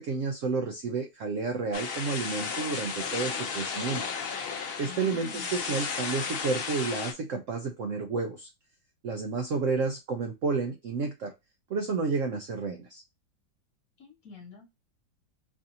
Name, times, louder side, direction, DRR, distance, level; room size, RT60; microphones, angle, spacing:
voice 1, 0.0-4.0 4.8-8.5 9.0-11.3 11.7-13.0, right 4 dB, 85° right, 4 dB, 0.6 m, -31 dB
sound 1, 1.7-7.1, left 5 dB, 75° left, 0.5 m, -34 dB
voice 2, 4.8-5.6 14.0-14.7, left 5 dB, 55° left, 1 dB, 1.4 m, -46 dB
4.6 x 2.6 x 2.7 m, 0.23 s
omnidirectional pair, 2.0 m